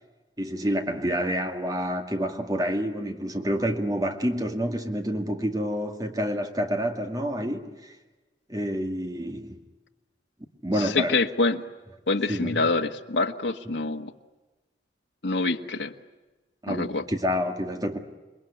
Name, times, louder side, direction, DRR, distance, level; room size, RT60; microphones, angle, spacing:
voice 1, 0.4-8.0 8.5-9.6 10.6-11.2 12.3-12.5 16.6-18.0, equal, 20° right, 2.0 m, -28 dB
voice 2, 10.8-11.6 12.1-14.1 15.2-15.9 16.7-17.0, left 3 dB, 75° left, 1.4 m, -26 dB
28.0 x 21.5 x 9.9 m
head